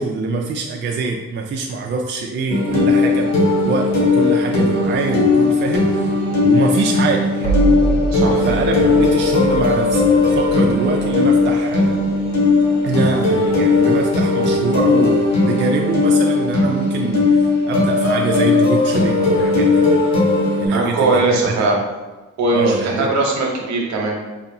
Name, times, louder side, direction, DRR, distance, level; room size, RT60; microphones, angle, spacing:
voice 1, 0.0-7.5 8.4-12.1 12.8-19.9 20.6-21.8 22.5-23.1, right 3 dB, 40° right, 1 dB, 0.4 m, -24 dB
sound 1, 2.5-20.7, left 3 dB, 65° left, 1.2 m, -17 dB
sound 2, 5.6-16.6, right 4 dB, 20° left, 0.8 m, -29 dB
voice 2, 8.1-8.4 20.7-21.8 22.4-24.2, right 2 dB, 65° right, 0 dB, 1.0 m, -19 dB
4.1 x 2.6 x 2.7 m, 1.2 s
cardioid pair, 90°, 30 cm